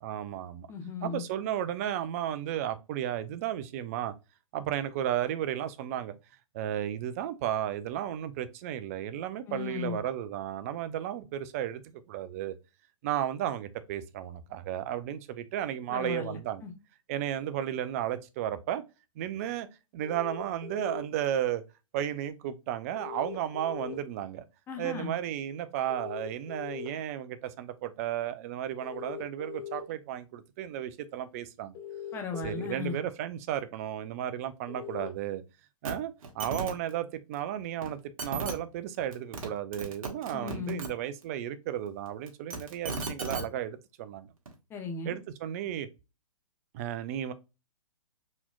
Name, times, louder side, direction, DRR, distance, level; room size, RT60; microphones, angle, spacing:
voice 1, 0.0-0.7 1.0-4.1 4.5-6.2 6.5-11.8 12.1-12.6 13.0-16.6 17.1-18.8 19.2-19.7 19.9-21.6 21.9-24.4 24.8-31.8 32.4-35.4 35.8-44.3 45.0-45.9 46.7-47.3, right 11 dB, 25° right, 0.3 m, -34 dB
voice 2, 0.7-1.2 9.5-10.0 15.9-16.7 24.7-25.1 32.1-33.0 40.3-40.8 44.7-45.2, left 5 dB, 15° left, 0.6 m, -36 dB
sound 1, 20.0-21.0 23.0-23.9 25.9-26.9 28.8-29.8 31.7-32.7 34.7-35.1, left 8 dB, 40° left, 1.0 m, -40 dB
sound 2, 35.8-35.9 36.2-36.7 37.8-37.9 38.2-38.5 39.1-39.5 39.7-40.9 42.3-43.4 44.5-44.6, right 4 dB, 70° right, 1.3 m, -35 dB
4.1 x 2.9 x 2.3 m
hypercardioid pair, 145°, 18 cm